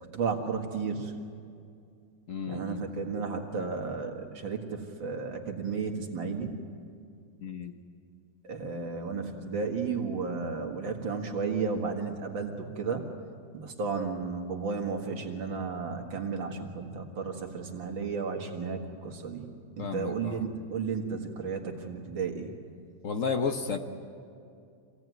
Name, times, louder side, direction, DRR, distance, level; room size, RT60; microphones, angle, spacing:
voice 1, 0.1-1.1 2.5-6.6 8.4-13.1 13.5-19.5 19.8-22.5, right 5 dB, 80° right, 3 dB, 2.7 m, -33 dB
voice 2, 2.3-2.9 7.4-7.7 19.8-20.5 23.0-23.8, left 5 dB, 50° left, 6 dB, 1.2 m, -32 dB
25.5 x 16.5 x 9.3 m, 2.4 s
omnidirectional pair, 2.1 m